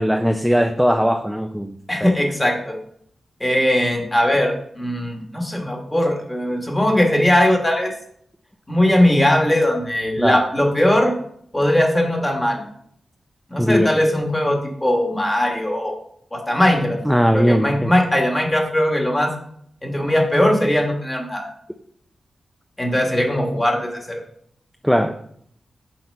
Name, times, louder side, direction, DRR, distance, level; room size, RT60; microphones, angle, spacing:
voice 1, 0.0-1.7 2.0-2.1 10.2-10.4 13.6-13.9 17.1-17.9 24.8-25.1, equal, ahead, 6 dB, 0.4 m, -19 dB
voice 2, 1.9-2.8 3.4-7.9 8.7-11.1 11.5-12.6 13.5-15.9 16.3-17.0 17.3-19.3 19.8-21.5 22.8-24.2, left 1 dB, 15° left, 2 dB, 1.5 m, -19 dB
5.9 x 4.3 x 5.4 m, 0.66 s
wide cardioid pair, 90°, 0 cm